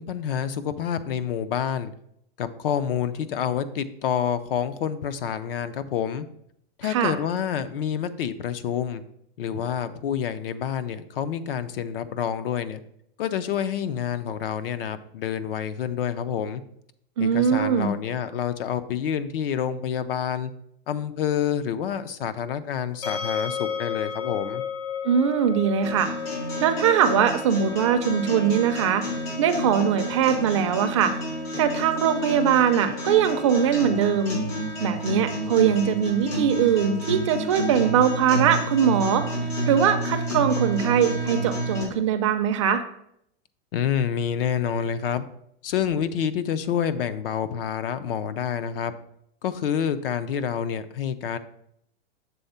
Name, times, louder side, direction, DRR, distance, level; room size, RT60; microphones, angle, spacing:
voice 1, 0.0-1.9 2.4-6.3 6.8-9.0 9.4-12.8 13.2-16.6 17.2-20.5 20.9-24.6 43.7-45.2 45.6-48.9 49.4-51.4, left 8 dB, 65° left, 13 dB, 0.6 m, -28 dB
voice 2, 6.8-7.1 17.2-17.9 25.0-26.1 26.6-31.1 31.6-34.4 34.8-39.2 39.7-42.8, right 8 dB, 30° right, 7 dB, 0.4 m, -21 dB
sound 1, 23.0-36.0, left 7 dB, 45° left, 1.0 m, -36 dB
sound 2, 25.8-41.8, equal, 85° left, 3.0 m, -30 dB
7.0 x 3.6 x 5.4 m, 0.73 s
supercardioid pair, 170°, 30 cm